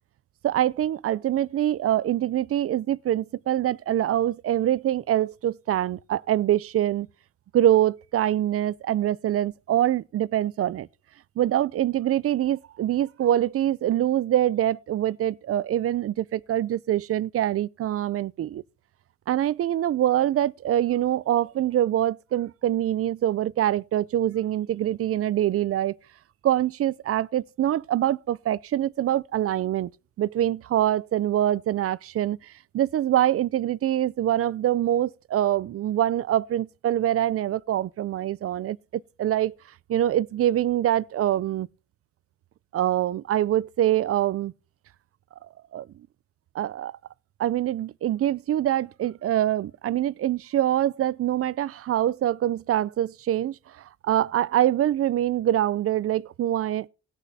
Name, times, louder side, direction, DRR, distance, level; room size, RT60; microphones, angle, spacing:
voice 1, 0.4-7.1 7.5-10.9 11.4-18.6 19.3-26.0 26.4-29.9 30.2-32.4 32.7-38.8 39.2-39.6 39.9-41.7 42.7-44.5 45.7-45.9 46.5-47.0 47.4-53.6 54.0-56.9, right 12 dB, 50° right, 0.5 m, -24 dB
19.5 x 6.7 x 2.7 m
cardioid pair, 90°, 30 cm